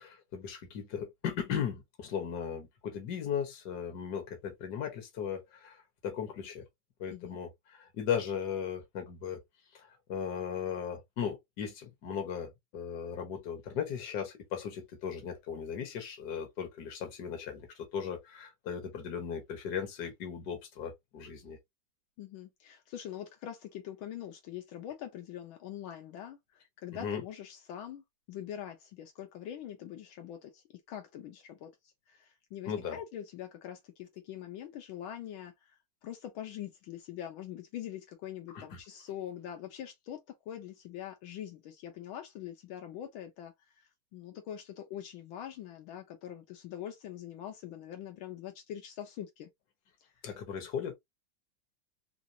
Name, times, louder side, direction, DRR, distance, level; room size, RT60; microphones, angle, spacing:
voice 1, 0.0-6.6 7.0-9.4 9.7-21.6 26.9-27.2 32.6-33.0 38.5-38.8 50.2-50.9, left 7 dB, 55° left, 1.6 m, -37 dB
voice 2, 22.2-31.7 32.1-40.2 40.5-49.5, left 10 dB, 80° left, 1.5 m, -43 dB
3.8 x 2.6 x 2.7 m
omnidirectional pair, 2.2 m